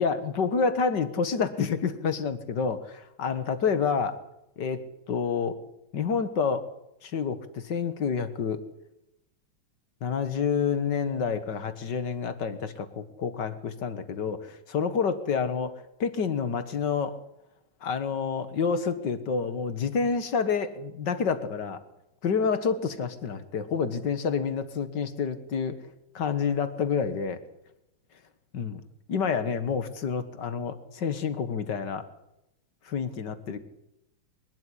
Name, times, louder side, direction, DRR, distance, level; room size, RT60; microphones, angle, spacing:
voice 1, 0.0-4.2 4.6-5.6 5.9-6.7 7.0-8.6 10.0-15.7 16.0-17.2 17.8-21.8 22.2-25.8 26.1-27.4 28.5-28.8 29.1-32.0 32.9-33.6, left 6 dB, 55° left, 11 dB, 2.0 m, -28 dB
22.0 x 12.5 x 10.0 m, 0.88 s
omnidirectional pair, 2.4 m